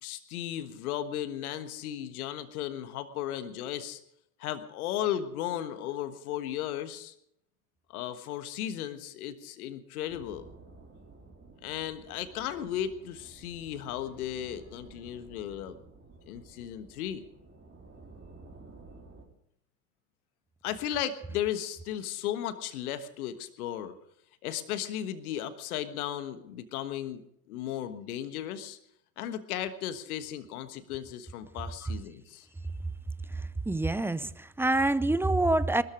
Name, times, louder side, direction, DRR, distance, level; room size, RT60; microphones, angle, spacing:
voice 1, 0.0-4.0 4.4-7.1 7.9-10.5 11.6-15.8 16.3-17.2 20.6-24.0 24.4-27.2 27.5-28.8 29.2-32.5, left 11 dB, 70° left, 10 dB, 1.5 m, -35 dB
sound 1, 10.1-19.3, right 3 dB, 25° right, 3.9 m, -53 dB
voice 2, 33.7-35.8, right 2 dB, 5° right, 17 dB, 0.5 m, -26 dB
21.0 x 13.5 x 5.1 m, 0.74 s
hypercardioid pair, 75°, 45 cm